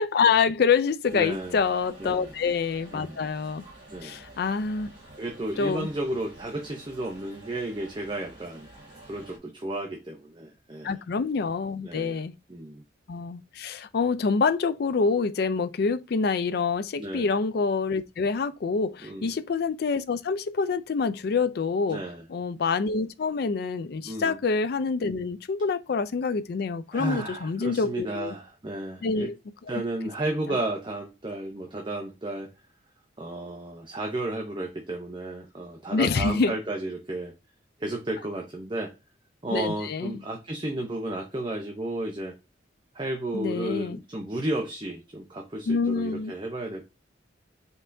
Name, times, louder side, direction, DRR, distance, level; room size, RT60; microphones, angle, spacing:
voice 1, 0.0-3.6 4.0-4.9 5.6-5.9 10.8-12.3 13.1-22.0 22.3-28.3 29.0-29.3 35.9-36.5 39.5-40.2 43.3-44.0 45.7-46.3, left 5 dB, 55° left, 0.4 m, -26 dB
sound 1, 1.0-9.4, right 2 dB, 75° right, 3.0 m, -49 dB
voice 2, 1.1-1.6 2.0-2.3 2.9-3.2 3.9-4.2 5.2-8.7 9.1-11.0 11.8-12.2 12.5-12.8 17.0-17.3 19.0-19.4 21.9-22.2 24.0-24.4 26.9-29.3 29.7-32.5 33.2-37.3 37.8-38.9 39.4-42.3 42.9-46.9, right 1 dB, 25° right, 0.7 m, -33 dB
5.4 x 3.3 x 2.6 m
head